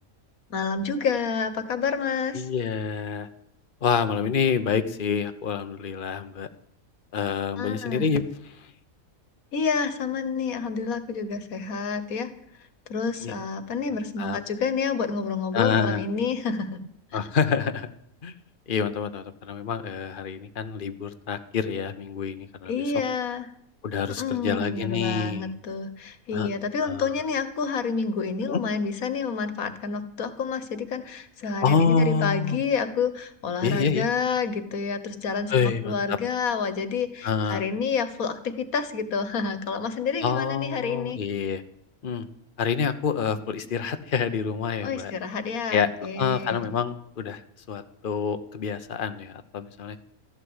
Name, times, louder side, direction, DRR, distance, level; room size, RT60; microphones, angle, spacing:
voice 1, 0.5-2.5 7.6-8.1 9.5-12.3 12.9-16.8 22.7-23.5 24.2-41.2 44.8-46.7, left 5 dB, 85° left, 12 dB, 1.7 m, -29 dB
voice 2, 2.3-3.3 3.8-6.5 7.1-8.2 13.2-13.3 14.2-14.4 15.5-16.0 17.1-17.9 18.2-18.3 18.7-22.8 23.8-25.5 26.3-26.5 26.8-27.1 28.5-28.6 31.6-32.6 33.6-34.1 35.5-36.2 37.2-37.6 40.2-41.6 42.0-42.3 42.6-45.1 45.7-45.9 46.2-47.4 47.7-50.0, left 6 dB, 40° left, 10 dB, 1.0 m, -27 dB
14.0 x 11.5 x 8.0 m, 0.71 s
omnidirectional pair, 1.5 m